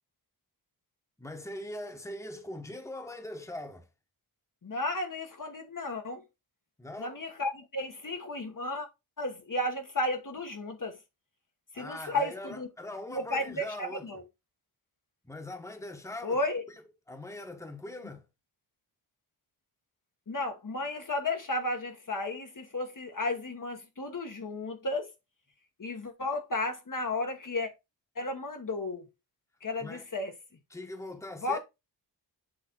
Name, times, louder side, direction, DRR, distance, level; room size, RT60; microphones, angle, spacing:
voice 1, 1.2-3.9 6.8-7.2 11.7-14.1 15.2-16.4 16.7-18.2 29.8-30.1 30.7-31.6, left 1 dB, 5° left, 1.3 m, -41 dB
voice 2, 4.6-6.2 7.0-8.9 9.2-11.0 11.7-12.7 13.1-14.2 16.2-16.6 20.3-25.1 25.8-27.7 28.2-29.1 29.6-30.3 31.4-31.6, left 2 dB, 40° left, 1.3 m, -33 dB
7.8 x 3.3 x 4.4 m
cardioid pair, 60°, 47 cm